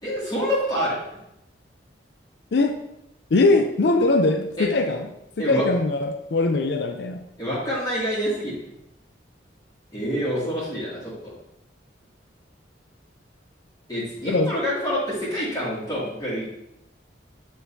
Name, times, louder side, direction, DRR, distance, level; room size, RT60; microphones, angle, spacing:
voice 1, 0.0-1.0 4.6-4.7 5.4-5.6 7.4-8.6 9.9-11.3 13.9-16.5, equal, 20° left, -9 dB, 2.1 m, -27 dB
voice 2, 3.3-5.1 5.4-7.2 14.2-14.5, left 2 dB, 60° left, 6 dB, 0.4 m, -21 dB
9.2 x 3.9 x 2.7 m, 0.85 s
head